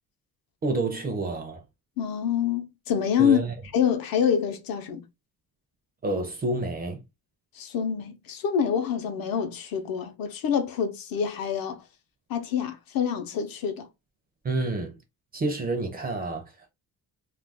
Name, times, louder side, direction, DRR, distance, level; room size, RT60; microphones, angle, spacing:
voice 1, 0.6-1.6 3.2-3.5 6.0-7.0 14.4-15.0 15.3-16.7, right 2 dB, 25° right, 0.5 m, -29 dB
voice 2, 2.0-3.4 3.7-5.0 7.5-11.8 12.3-13.9, left 8 dB, 65° left, 0.7 m, -26 dB
2.4 x 2.2 x 3.4 m
cardioid pair, 165°, 38 cm